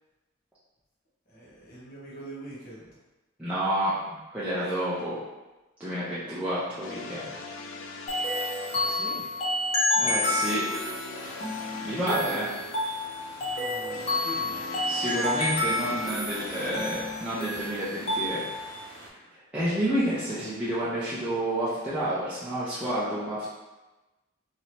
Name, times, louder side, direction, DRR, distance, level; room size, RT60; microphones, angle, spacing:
voice 1, 1.3-3.0 4.6-4.8 8.7-9.3 11.7-12.4 13.4-14.6, right 1 dB, 45° left, -7 dB, 1.0 m, -44 dB
voice 2, 3.4-5.2 5.8-7.2 10.0-10.7 11.8-12.5 14.9-18.4 19.5-23.5, right 1 dB, 5° right, -11 dB, 0.6 m, -29 dB
sound 1, 6.4-16.8, left 3 dB, 80° left, 0.4 m, -42 dB
sound 2, 8.1-18.7, left 1 dB, 30° left, 0.6 m, -30 dB
sound 3, 11.1-19.1, right 1 dB, 65° right, 0.7 m, -46 dB
3.0 x 2.7 x 2.9 m, 1.1 s
head